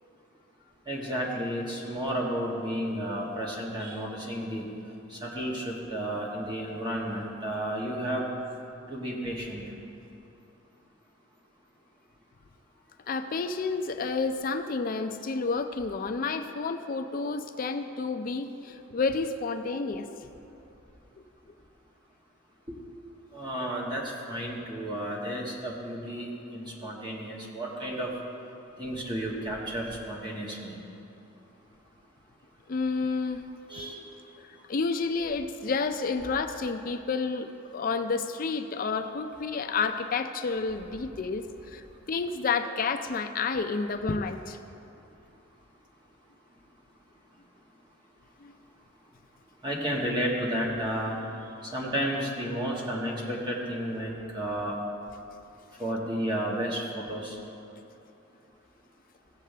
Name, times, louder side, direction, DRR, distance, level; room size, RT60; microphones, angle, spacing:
voice 1, 0.9-4.7 5.1-8.3 8.9-9.6 22.7-22.8 23.3-28.1 28.8-30.7 33.7-34.0 49.6-51.2 51.6-54.7 55.8-57.4, equal, 25° right, -4 dB, 1.6 m, -32 dB
voice 2, 13.1-20.3 32.7-33.4 34.4-44.6 48.4-48.5, left 4 dB, 45° left, 8 dB, 0.4 m, -30 dB
17.0 x 7.5 x 3.4 m, 2.8 s
head